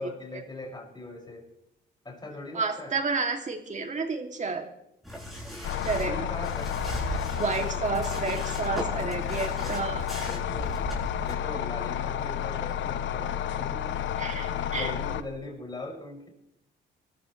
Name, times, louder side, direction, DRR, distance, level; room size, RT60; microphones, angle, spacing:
voice 1, 0.0-1.5 2.0-3.0 6.0-7.0 9.6-9.8 10.3-10.8 11.2-14.1 14.5-16.3, left 2 dB, 20° left, -1 dB, 6.7 m, -40 dB
voice 2, 2.5-4.7 5.8-6.1 7.1-10.1 14.2-14.9, right 4 dB, 40° right, 4 dB, 2.9 m, -31 dB
sound 1, 5.0-11.4, right 1 dB, ahead, 7.9 m, -37 dB
sound 2, 5.6-15.2, left 10 dB, 70° left, 1.0 m, -31 dB
26.5 x 14.0 x 3.4 m, 0.82 s
cardioid pair, 90°, 20 cm